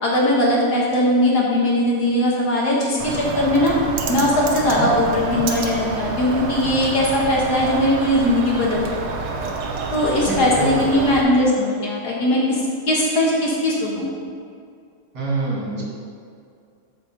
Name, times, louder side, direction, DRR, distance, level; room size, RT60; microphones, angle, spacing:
voice 1, 0.0-3.8 4.1-8.8 9.9-12.6 12.9-14.0, left 1 dB, 55° left, -4 dB, 1.7 m, -19 dB
Bird, 3.0-11.2, right 4 dB, 85° right, 1.8 m, -28 dB
voice 2, 10.2-10.9 15.1-15.8, right 2 dB, 50° right, -5 dB, 2.8 m, -25 dB
8.3 x 5.1 x 6.3 m, 2.3 s
omnidirectional pair, 2.3 m